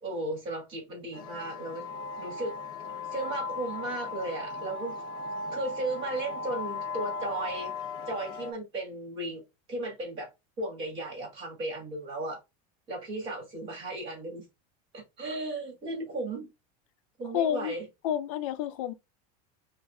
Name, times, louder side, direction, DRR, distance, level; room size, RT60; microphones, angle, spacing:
voice 1, 0.0-1.9 2.2-2.6 3.1-5.0 5.5-7.7 8.1-9.4 9.7-10.3 10.6-12.4 12.9-14.4 14.9-16.5 17.2-17.9, right 2 dB, 30° right, 2.2 m, -35 dB
sound 1, 1.1-8.5, left 3 dB, 25° left, 0.8 m, -37 dB
voice 2, 17.3-17.8 18.0-18.9, left 10 dB, 60° left, 0.5 m, -29 dB
5.4 x 2.5 x 2.4 m
supercardioid pair, 180°, 19 cm